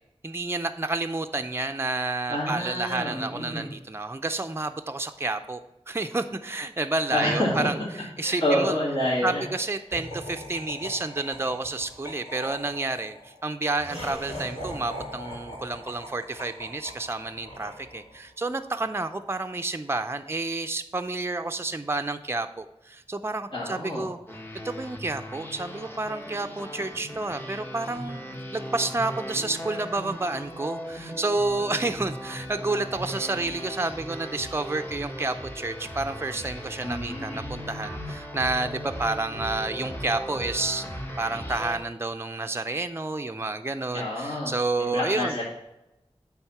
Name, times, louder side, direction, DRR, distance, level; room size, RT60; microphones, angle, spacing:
voice 1, 0.2-5.6 5.9-7.8 8.2-8.7 9.2-24.2 24.6-28.2 28.5-40.9 41.2-45.4, right 2 dB, 25° right, 7 dB, 0.5 m, -30 dB
voice 2, 2.3-3.7 7.1-7.7 8.2-9.4 23.5-24.1 36.6-37.4 43.9-45.4, left 1 dB, 50° left, -7 dB, 2.2 m, -28 dB
Laughter, 9.9-18.3, equal, 70° left, 2.8 m, -41 dB
sound 1, 24.3-41.8, equal, 20° left, 1.3 m, -38 dB
8.8 x 3.6 x 5.8 m, 0.93 s
wide cardioid pair, 40°, 11 cm